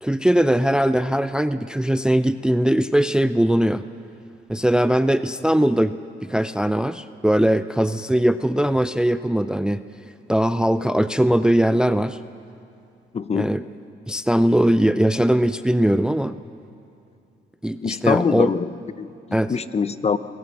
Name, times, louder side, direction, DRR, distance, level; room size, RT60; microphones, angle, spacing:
voice 1, 0.0-3.9 4.5-9.8 10.3-12.2 13.3-13.6 14.1-16.4 17.6-18.5 19.3-19.6, right 1 dB, 5° right, 12 dB, 0.5 m, -20 dB
voice 2, 13.1-13.5 17.8-20.2, left 5 dB, 30° left, 14 dB, 0.7 m, -24 dB
25.5 x 17.5 x 7.8 m, 2.6 s
cardioid pair, 90°, 20 cm